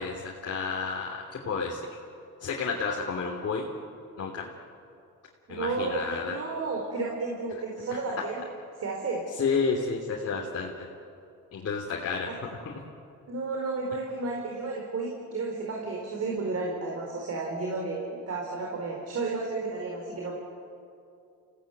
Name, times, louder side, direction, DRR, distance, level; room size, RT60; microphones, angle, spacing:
voice 1, 0.0-1.8 2.4-3.7 4.2-4.5 5.5-6.4 9.4-10.7 11.5-12.3, left 5 dB, 55° left, -1 dB, 3.2 m, -30 dB
voice 2, 5.5-8.4 8.8-9.2 12.2-12.4 13.3-20.3, right 3 dB, 55° right, 0 dB, 4.7 m, -32 dB
29.5 x 17.0 x 9.3 m, 2.5 s
cardioid pair, 90°, 30 cm